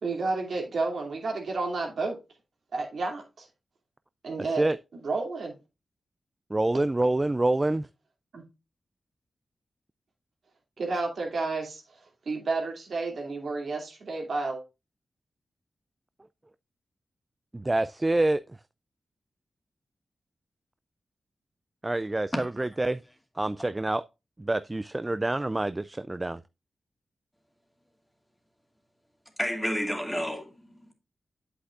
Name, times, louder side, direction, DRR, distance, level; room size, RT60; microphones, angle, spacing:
voice 1, 0.0-2.2 2.7-3.5 4.2-4.6 5.0-5.5 8.3-8.4 10.8-14.6, right 3 dB, 75° right, 2.6 m, -31 dB
voice 2, 6.5-7.9 17.5-18.4 21.8-23.0 23.4-24.0 24.4-26.4, right 2 dB, 25° right, 0.3 m, -26 dB
voice 3, 29.4-30.9, equal, 10° left, 2.2 m, -30 dB
8.1 x 7.8 x 2.5 m
cardioid pair, 70°, 0 cm